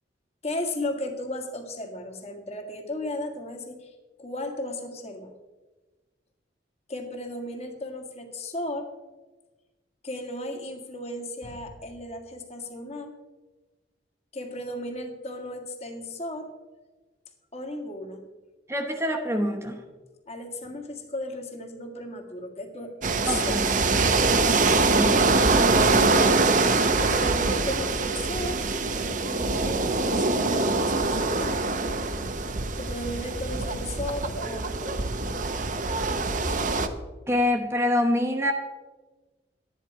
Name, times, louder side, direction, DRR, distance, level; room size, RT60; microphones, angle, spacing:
voice 1, 0.4-3.9 4.2-5.3 6.9-8.9 10.0-13.1 14.3-16.5 17.5-18.2 20.3-23.6 27.0-28.6 29.2-31.6 32.7-35.1, left 1 dB, 35° left, 4 dB, 1.7 m, -35 dB
voice 2, 18.7-19.8 23.3-23.6 25.0-25.4 37.3-38.5, left 1 dB, 15° right, 3 dB, 1.0 m, -25 dB
sound 1, 23.0-36.9, right 3 dB, 45° right, 0.8 m, -24 dB
12.0 x 10.0 x 4.7 m, 1.2 s
head